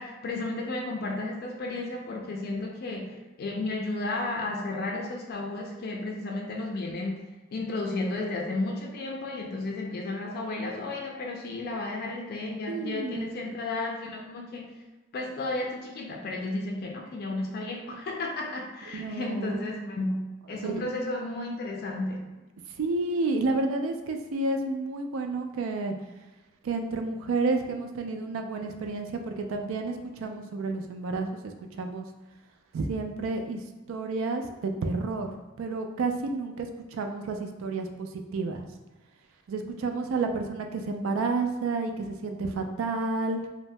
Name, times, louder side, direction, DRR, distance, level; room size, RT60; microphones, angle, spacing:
voice 1, 0.0-7.2 7.5-14.7 15.1-22.3, left 2 dB, 50° left, 1 dB, 0.4 m, -33 dB
voice 2, 12.7-13.5 18.9-19.7 20.5-20.9 22.8-25.9 26.6-31.4 31.7-32.0 32.7-35.3 35.6-38.7 39.5-43.4, right 3 dB, 85° right, 5 dB, 0.3 m, -30 dB
2.7 x 2.0 x 3.2 m, 1.1 s
head